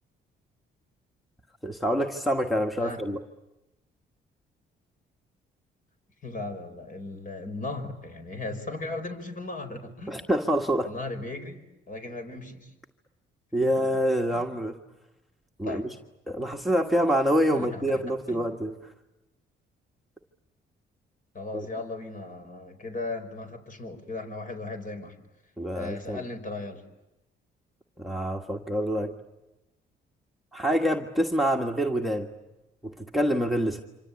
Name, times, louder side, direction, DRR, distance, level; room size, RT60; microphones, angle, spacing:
voice 1, 1.6-3.2 10.1-10.9 13.5-14.8 15.6-15.9 16.3-18.8 21.5-21.7 25.6-26.2 28.0-29.1 30.5-32.3 32.8-33.8, equal, ahead, 4 dB, 1.6 m, -26 dB
voice 2, 6.2-10.2 10.8-12.7 13.6-13.7 14.3-14.4 15.6-15.9 17.5-18.0 18.3-18.5 21.3-25.2 25.7-26.8, left 2 dB, 45° left, 7 dB, 5.1 m, -37 dB
26.5 x 26.0 x 8.5 m, 0.97 s
cardioid pair, 90°, 20 cm